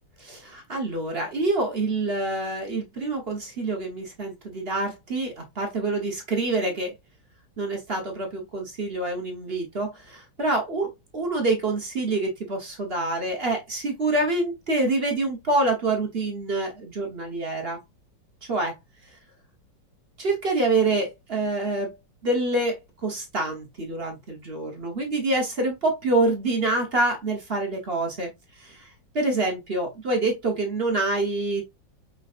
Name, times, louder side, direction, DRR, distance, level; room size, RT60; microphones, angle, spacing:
voice 1, 0.2-6.9 7.6-17.8 18.5-18.7 20.2-21.9 22.2-28.3 28.6-31.6, right 2 dB, 40° right, 1.0 m, -26 dB
5.4 x 3.9 x 2.4 m
omnidirectional pair, 2.0 m